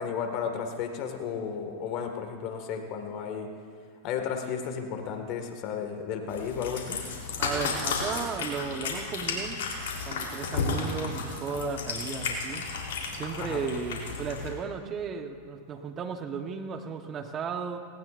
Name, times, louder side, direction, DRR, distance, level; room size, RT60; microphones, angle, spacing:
voice 1, 0.0-3.5 4.0-7.0 13.4-13.6, left 7 dB, 50° left, 5 dB, 1.9 m, -33 dB
Cat, 6.3-14.5, left 4 dB, 75° left, 3.6 m, -33 dB
voice 2, 7.4-9.6 10.0-12.7 13.1-17.8, right 6 dB, 30° right, 6 dB, 1.2 m, -35 dB
19.5 x 18.5 x 2.6 m, 2.1 s
hypercardioid pair, 110°, 0 cm